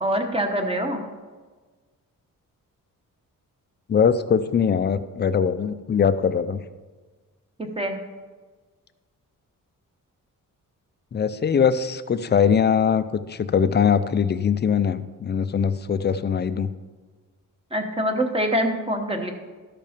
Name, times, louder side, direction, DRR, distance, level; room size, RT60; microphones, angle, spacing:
voice 1, 0.0-1.0 7.6-8.0 17.7-19.3, equal, 15° right, 4 dB, 1.0 m, -24 dB
voice 2, 3.9-6.6 11.1-16.7, left 7 dB, 30° left, 13 dB, 0.4 m, -21 dB
13.0 x 5.4 x 5.1 m, 1.4 s
wide cardioid pair, 155°, 33 cm